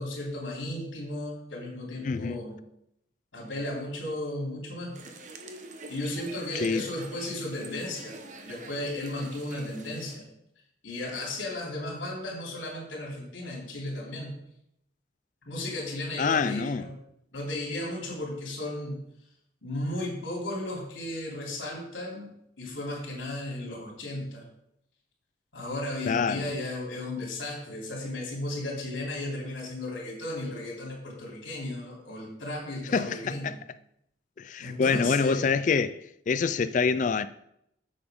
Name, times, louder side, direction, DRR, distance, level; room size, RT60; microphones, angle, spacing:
voice 1, 0.0-2.6 3.3-5.0 5.9-8.2 8.4-10.2 10.8-14.4 15.5-16.9 17.3-19.0 19.6-22.3 22.6-24.5 25.5-33.6 34.6-35.5, left 1 dB, 80° left, 3.4 m, -35 dB
voice 2, 2.0-2.4 6.5-6.8 16.2-16.9 26.1-26.5 32.9-33.5 34.4-36.0 36.3-37.3, left 5 dB, 40° left, 0.3 m, -26 dB
sound 1, 4.9-10.2, right 3 dB, 40° right, 1.0 m, -45 dB
8.7 x 7.0 x 5.2 m
head